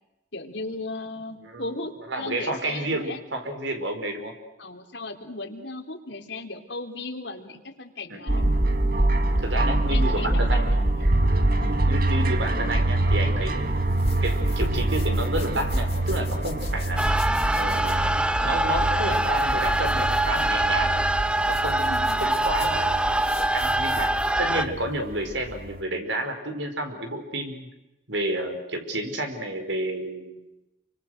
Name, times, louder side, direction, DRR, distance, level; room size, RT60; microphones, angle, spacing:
voice 1, 0.3-3.2 4.6-8.4 9.9-11.1 11.6-11.8 21.9-22.3, left 2 dB, 70° left, 4 dB, 3.4 m, -36 dB
voice 2, 1.4-4.4 8.1-8.4 9.4-10.9 11.8-13.8 14.2-17.0 17.5-18.1 18.4-20.9 21.5-24.1 24.4-27.7 28.1-30.4, right 1 dB, 85° right, 5 dB, 5.1 m, -31 dB
sound 1, 8.3-25.8, right 1 dB, 50° right, 2.0 m, -25 dB
sound 2, 13.5-24.4, left 1 dB, 35° left, 2.9 m, -39 dB
sound 3, 17.0-24.7, right 1 dB, 5° right, 0.8 m, -24 dB
29.0 x 25.0 x 6.5 m, 0.96 s
head